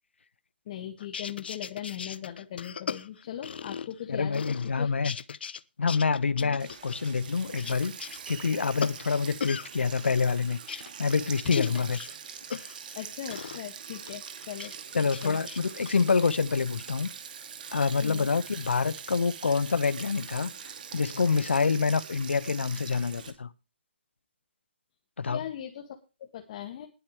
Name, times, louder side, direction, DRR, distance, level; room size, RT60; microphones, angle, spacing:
voice 1, 0.7-4.9 6.4-6.6 11.4-11.7 13.0-15.4 18.0-18.3 25.2-26.9, left 10 dB, 35° left, 2.0 m, -39 dB
sound 1, 1.0-4.0 4.3-5.6 5.9-9.7 10.0-13.0 13.3-13.6 14.1-14.7 15.1-15.9, left 6 dB, 60° left, 0.9 m, -39 dB
voice 2, 4.1-5.1 5.8-12.0 14.9-17.1 17.7-23.5 25.2-25.4, left 5 dB, 80° left, 1.4 m, -27 dB
Sink (filling or washing), 6.6-23.3, right 7 dB, 45° right, 2.5 m, -43 dB
20.0 x 8.6 x 3.3 m
hypercardioid pair, 155°, 6 cm